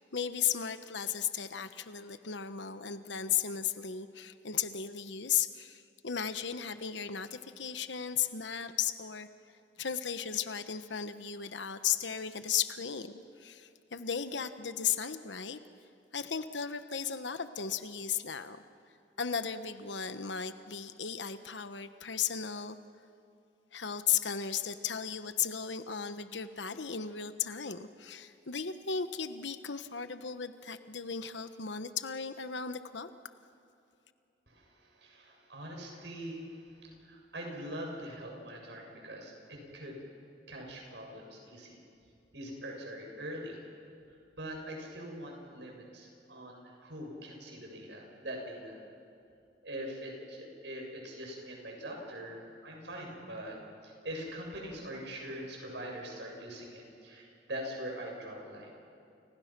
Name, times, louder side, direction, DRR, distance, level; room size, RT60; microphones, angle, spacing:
voice 1, 0.0-9.3 9.8-15.6 16.1-18.6 19.2-22.8 23.7-33.1, left 8 dB, 85° left, 10 dB, 1.1 m, -35 dB
voice 2, 34.5-40.0 40.5-41.8 42.3-43.6 44.1-48.8 49.6-53.6 53.8-58.7, equal, 80° right, 0 dB, 7.3 m, -43 dB
30.0 x 30.0 x 6.1 m, 2.6 s
head